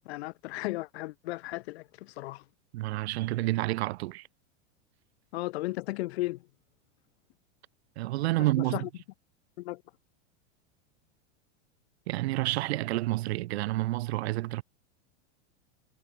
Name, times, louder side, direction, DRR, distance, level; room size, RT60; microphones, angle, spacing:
voice 1, 0.0-2.4 5.3-6.4 8.7-8.8 9.6-9.8, left 19 dB, 65° left, 6.2 m, -35 dB
voice 2, 2.7-4.3 8.0-8.9 12.1-14.6, right 18 dB, 65° right, 5.3 m, -29 dB
supercardioid pair, 155°, 34 cm